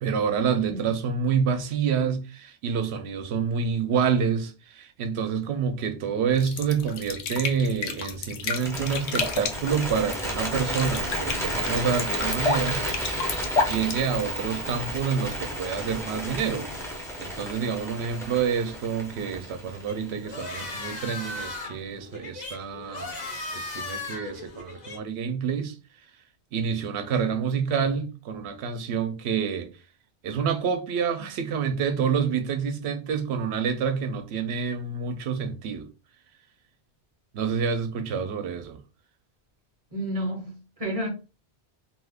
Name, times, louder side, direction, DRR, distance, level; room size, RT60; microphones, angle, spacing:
voice 1, 0.0-12.8 13.6-16.7 17.2-23.2 23.5-25.8 26.5-29.7 30.2-35.9 37.3-38.8, right 6 dB, 75° right, 0.8 m, -28 dB
sound 1, 6.4-14.6, left 4 dB, 85° left, 0.9 m, -31 dB
Bird, 8.5-20.7, right 1 dB, 5° left, 0.5 m, -32 dB
sound 2, 19.9-25.0, left 2 dB, 45° left, 0.8 m, -37 dB
voice 2, 39.9-41.1, equal, 35° right, 0.7 m, -31 dB
2.6 x 2.3 x 3.4 m
omnidirectional pair, 1.1 m